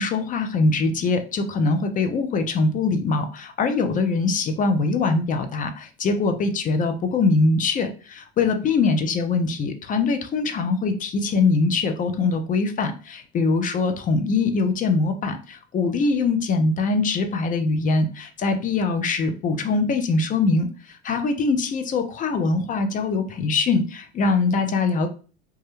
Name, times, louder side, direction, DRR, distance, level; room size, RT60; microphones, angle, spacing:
voice 1, 0.0-25.1, left 3 dB, 25° left, 7 dB, 0.3 m, -23 dB
2.3 x 2.0 x 2.9 m, 0.37 s
supercardioid pair, 100°, 34 cm